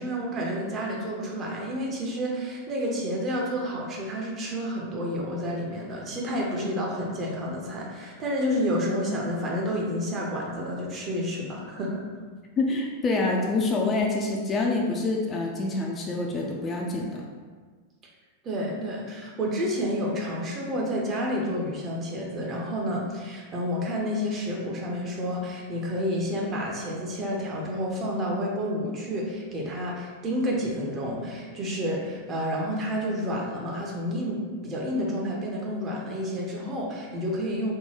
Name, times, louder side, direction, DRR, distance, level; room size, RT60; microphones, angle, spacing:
voice 1, 0.0-12.0 18.4-37.7, equal, 30° right, -2 dB, 0.7 m, -30 dB
voice 2, 12.6-17.2, left 3 dB, 25° left, 0 dB, 0.4 m, -26 dB
3.6 x 2.2 x 2.8 m, 1.5 s
figure-of-eight pair, 90°, 0 cm